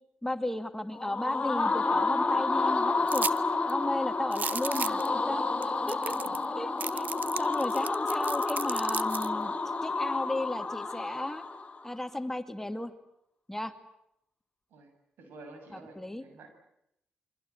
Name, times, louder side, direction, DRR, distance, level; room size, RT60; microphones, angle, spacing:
voice 1, 0.2-3.3 3.7-6.1 6.6-7.0 7.4-9.5 9.8-11.4 11.8-12.9 13.5-13.7 15.7-16.2, left 1 dB, 10° left, 8 dB, 2.4 m, -34 dB
sound 1, 0.9-11.8, left 3 dB, 35° left, 4.3 m, -30 dB
sound 2, 3.1-3.4 3.7-3.8 4.3-5.1 5.6-5.7 5.9-6.5 6.8-9.3, right 6 dB, 55° right, 1.0 m, -35 dB
voice 2, 15.2-16.6, right 2 dB, 75° right, 6 dB, 7.0 m, -50 dB
28.5 x 24.0 x 8.4 m, 0.80 s
supercardioid pair, 50°, 4 cm